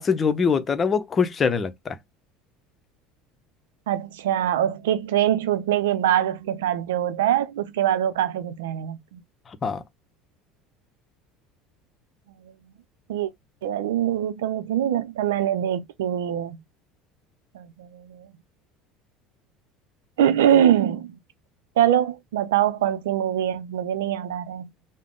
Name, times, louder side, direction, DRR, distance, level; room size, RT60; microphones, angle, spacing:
voice 1, 0.0-2.0 9.6-9.8, left 5 dB, 35° left, 0.8 m, -23 dB
voice 2, 3.9-9.2 13.1-13.3 13.6-16.6 17.5-18.3 20.2-21.2 21.8-24.7, right 11 dB, 85° right, 0.5 m, -23 dB
3.7 x 2.1 x 3.6 m
hypercardioid pair, 80°, 0 cm